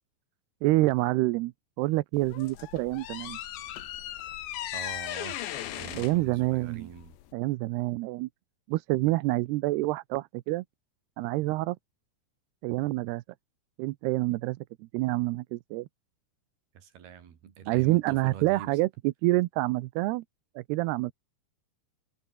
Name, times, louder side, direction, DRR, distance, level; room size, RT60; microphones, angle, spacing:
voice 1, 0.6-1.5 1.8-3.4 6.0-6.9 7.3-8.3 8.7-10.6 11.2-11.8 12.6-13.2 13.8-15.9 17.7-20.2 20.6-21.1, right 19 dB, 85° right, 2.7 m, -27 dB
sound 1, 2.1-7.3, left 12 dB, 85° left, 4.0 m, -38 dB
voice 2, 4.7-5.4 5.8-7.2 16.7-18.8, right 8 dB, 65° right, 4.8 m, -44 dB
omnidirectional pair, 4.9 m